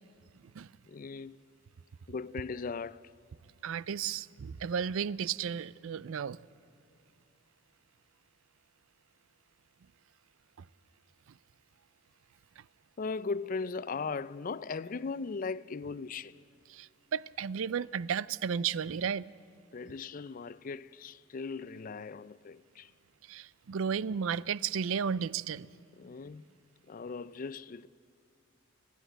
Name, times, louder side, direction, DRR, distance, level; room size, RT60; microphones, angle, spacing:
voice 1, 0.9-1.4 2.1-3.1 13.0-16.4 19.7-22.9 25.9-26.4 26.9-27.9, left 4 dB, 40° left, 0.4 m, -38 dB
voice 2, 3.6-6.4 16.7-19.3 23.3-25.7, right 7 dB, 75° right, 0.4 m, -33 dB
29.5 x 10.0 x 9.1 m
head